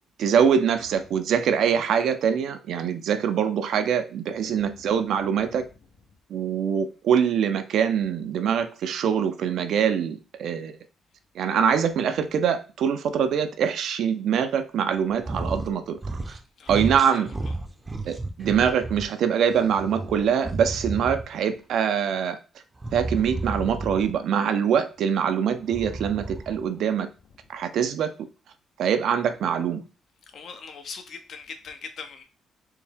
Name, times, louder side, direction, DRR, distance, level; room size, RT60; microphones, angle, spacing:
voice 1, 0.2-5.6 6.3-10.8 11.4-16.0 16.7-17.3 18.1-22.4 22.9-27.1 27.5-28.1 28.8-29.8, right 7 dB, 75° right, 0.4 m, -24 dB
voice 2, 4.5-5.5 5.8-5.9 15.6-15.7 16.6-17.6 30.3-32.2, left 5 dB, 60° left, 0.7 m, -43 dB
sound 1, 15.2-15.7 16.0-16.4 16.7-19.1 19.5-21.4 22.8-24.2 25.6-26.7, right 2 dB, 20° right, 0.5 m, -32 dB
4.5 x 2.1 x 3.4 m
cardioid pair, 90°, 0 cm